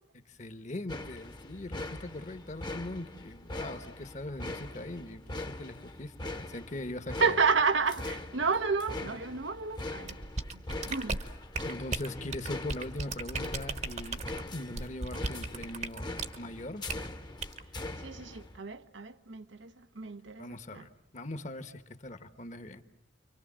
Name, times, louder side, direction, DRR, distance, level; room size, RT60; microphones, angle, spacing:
voice 1, 0.1-7.4 11.6-14.2 14.5-16.8 20.4-22.8, left 1 dB, 40° left, 1.2 m, -41 dB
sound 1, 0.9-18.6, left 2 dB, 25° left, 1.0 m, -42 dB
voice 2, 7.2-10.2 10.5-11.2 18.0-20.9, right 5 dB, 85° right, 1.0 m, -31 dB
sound 2, 10.1-16.4 16.9-17.1 17.4-17.6, right 3 dB, 40° right, 1.0 m, -36 dB
30.0 x 24.5 x 7.4 m
head